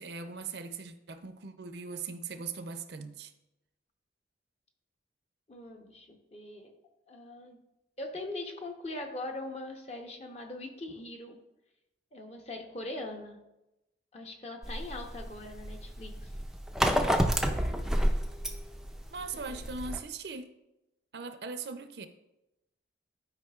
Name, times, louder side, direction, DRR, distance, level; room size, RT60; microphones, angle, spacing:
voice 1, 0.0-3.3 19.1-20.5 21.1-22.1, right 4 dB, 65° right, 0.5 m, -40 dB
voice 2, 5.5-6.7 7.1-7.6 8.0-11.4 12.1-13.4 14.1-16.3 19.5-19.7, left 2 dB, 35° left, 0.8 m, -41 dB
sound 1, 14.6-20.0, equal, 5° right, 0.4 m, -29 dB
11.5 x 5.0 x 2.4 m
head